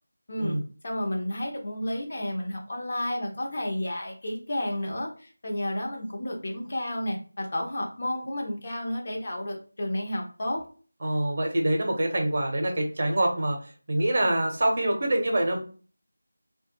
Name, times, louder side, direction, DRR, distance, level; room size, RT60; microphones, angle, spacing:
voice 1, 0.8-10.6, left 1 dB, 40° left, 0 dB, 0.6 m, -31 dB
voice 2, 11.0-13.6 13.9-15.6, right 1 dB, 40° right, 2 dB, 0.6 m, -25 dB
2.3 x 2.2 x 2.8 m, 0.40 s
figure-of-eight pair, 165°, 0 cm